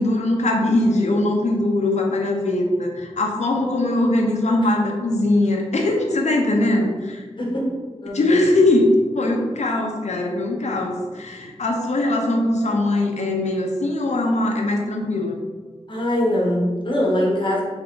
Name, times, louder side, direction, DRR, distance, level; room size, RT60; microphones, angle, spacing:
voice 1, 0.0-7.2 8.1-15.4, left 2 dB, 75° left, 1 dB, 0.7 m, -21 dB
voice 2, 7.4-7.7 8.0-8.4 15.9-17.6, left 1 dB, 45° left, -3 dB, 1.2 m, -22 dB
3.6 x 3.5 x 3.7 m, 1.4 s
wide cardioid pair, 90°, 12 cm